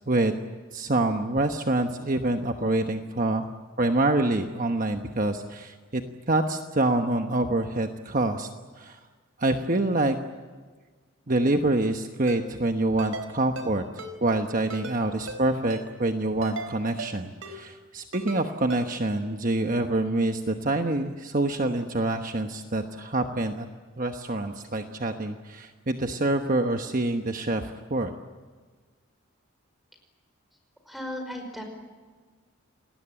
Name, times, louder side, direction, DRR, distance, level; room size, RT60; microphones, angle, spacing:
voice 1, 0.7-3.4 3.8-6.0 6.3-8.5 8.8-9.0 9.4-10.2 11.3-13.8 14.2-23.7 24.0-28.1, right 2 dB, 40° right, 5 dB, 1.1 m, -26 dB
Ringtone, 12.3-12.4 13.0-13.3 13.6-13.7 14.0-14.1 14.7-15.0 15.3-15.4 15.7-15.8 16.4-16.7 17.0-17.1 17.4-17.5 18.1-18.4 18.7-18.8, right 3 dB, 80° right, 4.1 m, -36 dB
voice 2, 30.9-31.6, left 1 dB, ahead, 4 dB, 5.3 m, -35 dB
29.0 x 19.5 x 8.9 m, 1.4 s
head